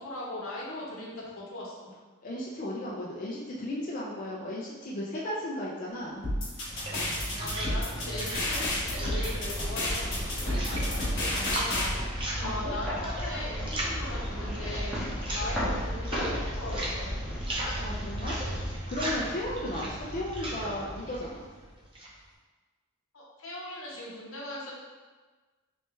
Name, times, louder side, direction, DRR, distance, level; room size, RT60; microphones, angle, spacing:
voice 1, 0.0-1.9 7.4-11.9 12.4-15.0 15.3-17.1 23.1-24.7, left 1 dB, 80° left, -4 dB, 1.0 m, -39 dB
voice 2, 2.2-6.2 12.4-12.7 17.8-18.4 18.9-21.4, left 1 dB, 40° left, -5 dB, 0.4 m, -35 dB
sound 1, 6.2-11.9, left 1 dB, 60° left, 1.1 m, -30 dB
sound 2, 6.2-22.2, right 1 dB, 25° right, 0.6 m, -37 dB
sound 3, 8.0-19.6, equal, 5° right, 1.0 m, -35 dB
3.2 x 3.2 x 3.1 m, 1.3 s
head